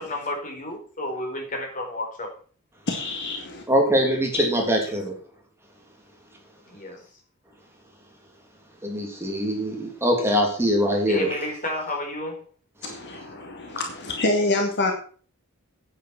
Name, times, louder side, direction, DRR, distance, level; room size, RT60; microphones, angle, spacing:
voice 1, 0.1-2.3 6.7-7.0 11.1-12.4, left 1 dB, 35° left, 2 dB, 4.5 m, -31 dB
voice 2, 2.9-3.6 4.3-4.5 12.8-14.9, left 2 dB, 50° left, 3 dB, 2.2 m, -26 dB
voice 3, 3.7-5.1 8.8-11.3 12.8-12.9, equal, 10° right, 0 dB, 3.1 m, -23 dB
9.5 x 9.5 x 6.0 m, 0.42 s
head